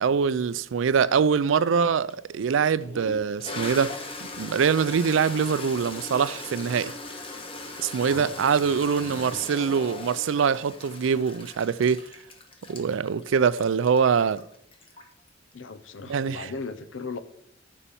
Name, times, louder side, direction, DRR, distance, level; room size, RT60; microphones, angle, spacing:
voice 1, 0.0-4.0 4.4-6.9 7.8-12.0 12.7-14.4 16.1-16.5, right 6 dB, 75° right, 0.4 m, -24 dB
Toilet flush, 2.1-2.2 2.8-15.3, left 2 dB, 30° left, 1.2 m, -39 dB
voice 2, 8.0-8.7 9.0-9.4 15.5-17.2, left 4 dB, 75° left, 0.7 m, -38 dB
7.1 x 5.5 x 7.0 m
head